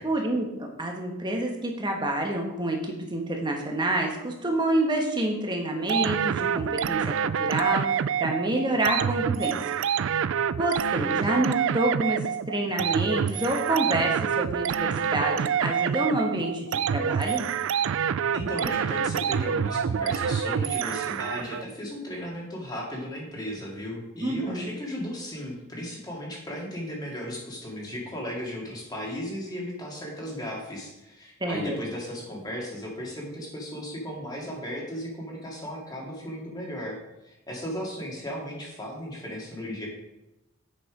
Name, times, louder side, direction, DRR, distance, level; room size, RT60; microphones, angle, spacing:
voice 1, 0.0-9.6 10.6-12.2 12.5-17.5 24.2-24.7 31.4-31.8, right 1 dB, 20° right, 1 dB, 1.3 m, -28 dB
sound 1, 5.9-21.6, right 7 dB, 60° right, 0.3 m, -27 dB
voice 2, 18.3-37.0 37.2-39.9, equal, 20° left, -3 dB, 2.1 m, -36 dB
8.0 x 6.1 x 5.0 m, 0.95 s
head